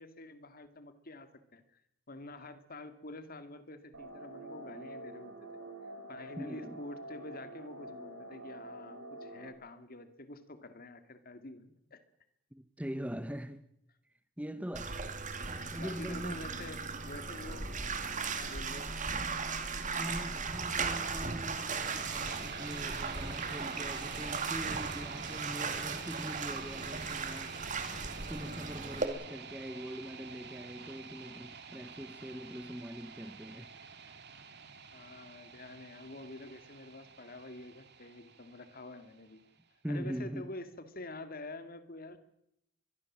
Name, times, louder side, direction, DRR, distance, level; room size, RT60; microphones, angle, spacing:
voice 1, 0.0-1.8 2.1-5.5 6.1-12.0 15.8-17.7 18.4-18.9 34.9-39.4 39.9-42.2, left 2 dB, 45° left, 2.2 m, -47 dB
sound 1, 3.9-9.5, right 1 dB, 75° right, 5.9 m, -47 dB
voice 2, 6.4-6.8 12.5-13.6 14.4-15.0 15.7-16.4 19.8-27.7 28.3-33.7 39.8-40.5, equal, 5° right, 1.0 m, -42 dB
Bathtub (filling or washing), 14.7-29.1, right 4 dB, 40° right, 2.5 m, -37 dB
sound 2, 21.3-39.3, right 5 dB, 55° right, 2.5 m, -48 dB
23.5 x 22.5 x 7.5 m
head